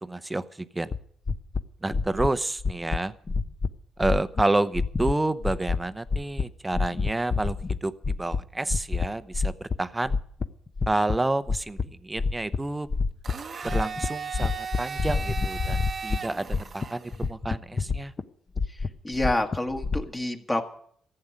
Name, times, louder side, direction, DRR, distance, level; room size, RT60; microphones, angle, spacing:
voice 1, 0.0-0.9 1.8-3.1 4.0-10.2 10.9-12.9 13.6-18.1, right 2 dB, 15° right, 13 dB, 0.8 m, -29 dB
sound 1, 0.9-1.0 1.3-1.6 1.9-2.3 2.6-3.0 3.3-3.7 4.0-4.4 4.7-5.1 5.4-5.8 6.1-6.4 6.7-7.8 8.0-8.4 8.7-9.1 9.3-9.8 10.1-11.2 11.5-11.8 12.2-12.6 12.9-13.3 13.6-14.1 14.3-16.2 16.5-16.9 17.1-18.2 18.6-20.0, left 4 dB, 35° left, 0.9 m, -27 dB
Domestic sounds home sounds, 13.2-17.3, right 5 dB, 40° right, 0.9 m, -36 dB
voice 2, 19.0-20.6, left 1 dB, 15° left, 4 dB, 1.6 m, -27 dB
14.5 x 7.8 x 9.6 m, 0.63 s
cardioid pair, 90°, 0 cm